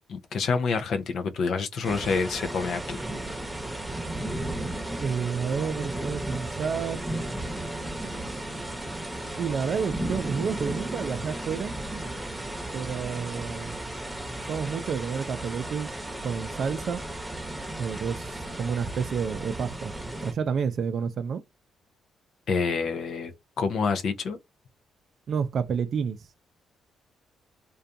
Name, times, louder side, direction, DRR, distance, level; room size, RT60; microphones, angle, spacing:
voice 1, 0.1-3.0 22.5-23.3 23.6-24.4, left 5 dB, 65° left, 0.4 m, -27 dB
sound 1, 1.8-20.3, right 1 dB, 5° right, 0.9 m, -34 dB
voice 2, 5.0-7.1 9.4-11.7 12.7-13.8 14.5-15.9 16.2-17.0 17.8-19.9 20.2-21.4 25.3-26.2, right 6 dB, 55° right, 0.4 m, -30 dB
2.5 x 2.2 x 2.6 m
cardioid pair, 90°, 0 cm